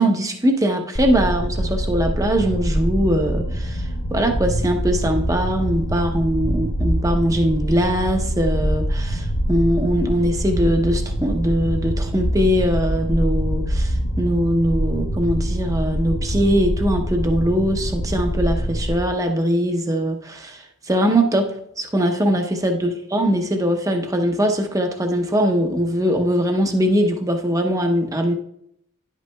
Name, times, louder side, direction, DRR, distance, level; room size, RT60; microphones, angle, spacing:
voice 1, 0.0-21.5 21.8-28.3, equal, 15° right, 4 dB, 0.7 m, -21 dB
sound 1, 1.0-18.9, equal, 70° left, 1.0 m, -24 dB
10.5 x 8.2 x 2.3 m, 0.74 s
head